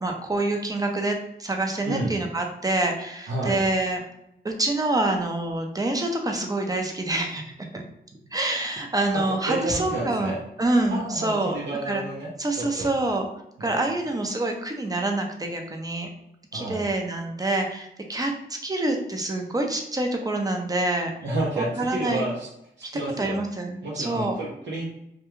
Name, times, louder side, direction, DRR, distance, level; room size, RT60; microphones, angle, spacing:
voice 1, 0.0-4.0 4.4-7.4 7.7-7.8 8.3-10.3 10.6-11.6 11.9-12.0 12.4-13.3 13.6-16.1 16.5-18.3 18.6-21.1 21.6-22.3 22.8-22.9 23.2-24.4, right 2 dB, 20° right, 2 dB, 0.5 m, -26 dB
voice 2, 3.3-3.6 9.1-10.4 10.9-12.3 12.6-12.9 13.6-13.7 16.5-16.8 21.2-22.5 22.9-23.4 23.8-24.9, right 2 dB, 85° right, -5 dB, 0.7 m, -30 dB
2.3 x 2.2 x 3.0 m, 0.80 s
cardioid pair, 65°, 18 cm